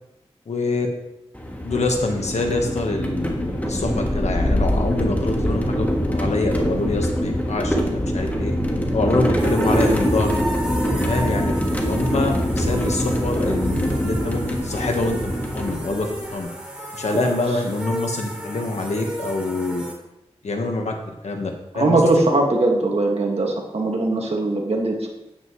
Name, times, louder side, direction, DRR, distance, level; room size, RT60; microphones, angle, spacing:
voice 1, 0.5-0.9 1.6-8.5 8.9-10.4 11.1-11.5 11.8-16.5 16.9-19.8 20.4-21.0 21.2-22.0, left 2 dB, 80° left, 3 dB, 1.4 m, -25 dB
sound 1, 1.4-16.4, equal, 15° left, 1.6 m, -23 dB
sound 2, 9.4-19.9, equal, 10° right, 2.9 m, -34 dB
voice 2, 21.7-25.1, right 2 dB, 65° right, 0 dB, 1.9 m, -20 dB
9.6 x 9.1 x 3.2 m, 0.89 s
wide cardioid pair, 65°, 11 cm